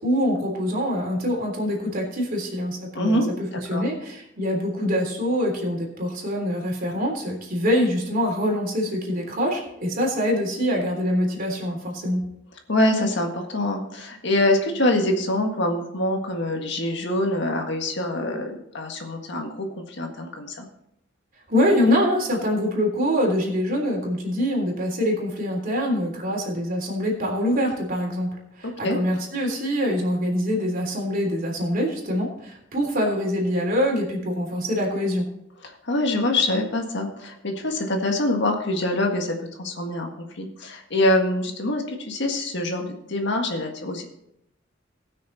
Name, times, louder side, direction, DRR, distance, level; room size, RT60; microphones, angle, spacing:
voice 1, 0.0-12.2 21.5-35.3, equal, 50° right, 0 dB, 3.4 m, -24 dB
voice 2, 3.0-3.3 3.7-3.8 12.7-20.7 28.8-29.0 35.6-40.1 40.3-44.1, left 1 dB, 65° left, 3 dB, 1.8 m, -25 dB
19.0 x 6.5 x 4.1 m, 0.79 s
head